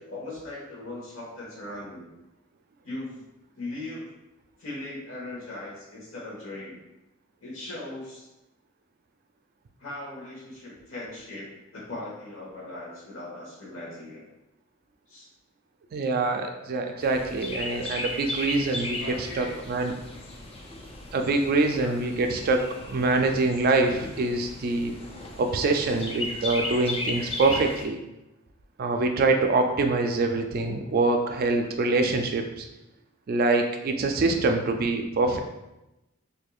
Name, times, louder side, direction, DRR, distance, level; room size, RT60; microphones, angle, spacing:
voice 1, 0.0-2.1 2.8-3.2 3.5-4.1 4.6-6.8 7.4-8.3 9.8-14.2 15.1-15.3 19.0-19.6 20.0-20.2 21.8-21.9, left 2 dB, 65° left, -4 dB, 1.3 m, -39 dB
voice 2, 15.9-19.9 21.1-24.9 25.4-28.0 28.8-32.7 33.3-35.4, right 3 dB, 45° right, 4 dB, 0.3 m, -25 dB
Chirp tweet, 17.0-27.8, left 1 dB, 25° left, 0.4 m, -36 dB
4.3 x 2.7 x 2.3 m, 0.94 s
head